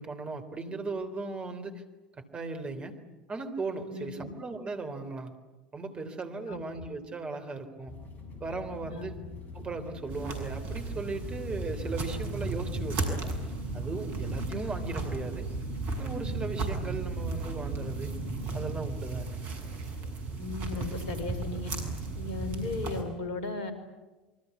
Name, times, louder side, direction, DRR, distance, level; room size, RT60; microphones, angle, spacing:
voice 1, 0.0-1.8 2.2-3.0 3.3-5.4 5.7-8.0 8.4-9.2 9.5-13.4 13.7-15.5 15.9-18.1 18.5-19.4, right 3 dB, 25° right, 7 dB, 3.5 m, -37 dB
voice 2, 3.9-4.3 6.5-6.7 8.9-9.1 20.4-21.7 22.1-23.7, left 3 dB, 60° left, 10 dB, 4.9 m, -36 dB
sound 1, 7.9-13.5, left 5 dB, 35° left, 6.8 m, -45 dB
sound 2, 10.1-23.0, right 3 dB, 50° right, 7.1 m, -34 dB
27.5 x 24.0 x 8.4 m, 1.2 s
figure-of-eight pair, 75°, 5 cm